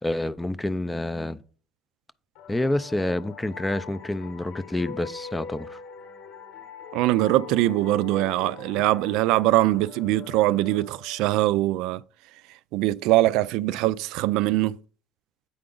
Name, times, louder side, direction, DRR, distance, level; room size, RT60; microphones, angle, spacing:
voice 1, 0.0-1.4 2.5-5.8, left 1 dB, 5° left, 0.3 m, -28 dB
sound 1, 2.4-11.8, left 7 dB, 75° left, 1.1 m, -43 dB
voice 2, 6.9-12.0 12.7-14.8, right 16 dB, 80° right, 0.3 m, -22 dB
8.5 x 4.9 x 3.8 m
cardioid pair, 155°, 0 cm